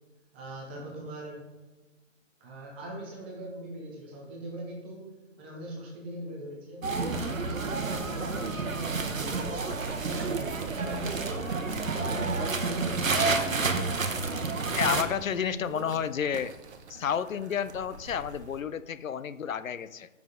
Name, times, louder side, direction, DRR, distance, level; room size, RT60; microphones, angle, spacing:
voice 1, 0.3-1.4 2.4-9.7 10.0-11.5 11.8-14.2 14.6-15.9, right 1 dB, 10° right, -1 dB, 0.5 m, -41 dB
sound 1, 6.8-15.0, right 4 dB, 90° right, 1.0 m, -30 dB
sound 2, 9.0-18.6, right 5 dB, 55° right, 0.9 m, -44 dB
voice 2, 14.7-16.5 16.9-20.1, left 8 dB, 85° left, 15 dB, 0.6 m, -31 dB
7.5 x 5.8 x 3.8 m, 1.2 s
figure-of-eight pair, 135°, 39 cm